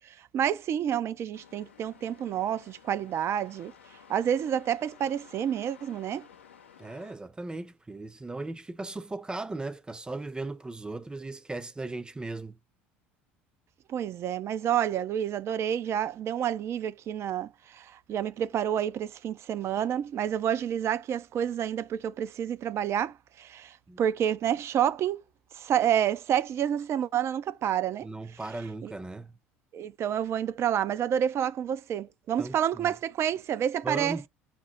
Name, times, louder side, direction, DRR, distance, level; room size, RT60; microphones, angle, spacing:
voice 1, 0.0-3.7 4.1-6.3 13.9-25.2 25.5-28.1 28.8-28.9 29.7-34.3, right 9 dB, 45° right, 0.5 m, -29 dB
sound 1, 1.3-7.1, left 8 dB, 90° left, 0.8 m, -54 dB
voice 2, 6.8-12.6 23.9-24.0 28.0-29.3 32.4-33.0 33.8-34.2, right 2 dB, 15° right, 0.7 m, -37 dB
5.9 x 2.0 x 4.3 m
hypercardioid pair, 70°, 6 cm